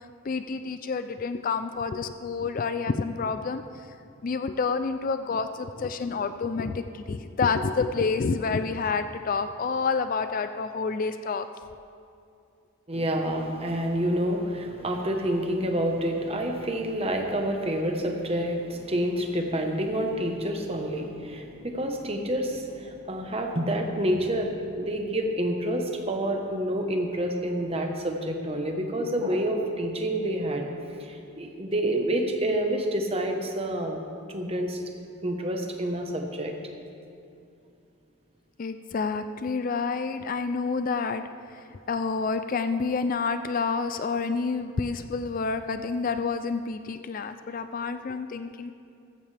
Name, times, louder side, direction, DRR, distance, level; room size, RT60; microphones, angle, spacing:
voice 1, 0.2-3.6 4.2-11.5 38.6-41.2 41.5-48.7, left 4 dB, 40° left, 10 dB, 0.3 m, -28 dB
voice 2, 12.9-30.7 31.0-34.0 34.3-34.8 35.2-36.5, right 1 dB, 25° right, 3 dB, 1.1 m, -28 dB
14.5 x 14.5 x 3.4 m, 2.6 s
head